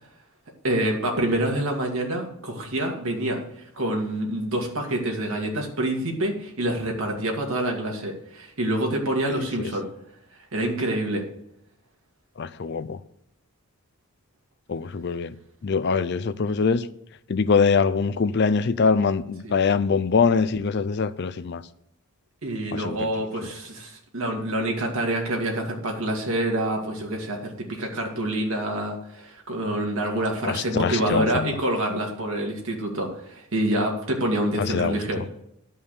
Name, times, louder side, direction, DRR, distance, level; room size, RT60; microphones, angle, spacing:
voice 1, 0.6-3.4 3.8-9.9 10.5-11.2 19.4-19.5 22.4-35.2, right 1 dB, 65° right, 2.3 m, -27 dB
voice 2, 9.3-9.7 12.4-13.0 14.7-15.3 15.6-16.9 17.3-21.6 22.7-23.1 30.5-31.5 34.6-35.2, left 5 dB, 50° left, 0.4 m, -23 dB
11.5 x 5.5 x 6.8 m
head